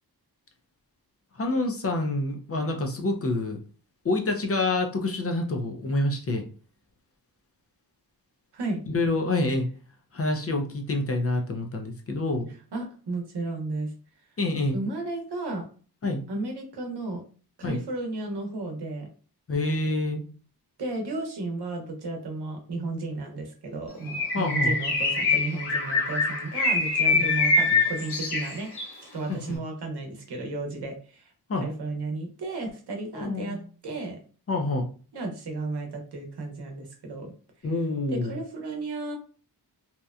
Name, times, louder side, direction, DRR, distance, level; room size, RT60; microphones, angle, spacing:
voice 1, 1.3-3.6 4.0-6.4 8.9-9.7 10.1-12.5 14.4-14.9 16.0-16.2 17.6-17.8 19.5-20.2 24.3-24.8 27.1-27.3 29.3-29.6 31.5-31.7 33.1-33.6 34.5-34.9 37.6-38.4, left 2 dB, 35° left, 3 dB, 0.5 m, -27 dB
voice 2, 12.7-13.9 14.7-15.6 16.3-17.2 17.6-19.1 20.8-28.7 29.1-31.3 31.6-33.6 33.8-34.2 35.1-37.3 38.1-39.2, right 2 dB, 80° right, 3 dB, 0.8 m, -33 dB
Bird, 24.1-29.0, left 3 dB, 80° left, 0.9 m, -24 dB
2.8 x 2.1 x 2.3 m, 0.39 s
wide cardioid pair, 115°, 40 cm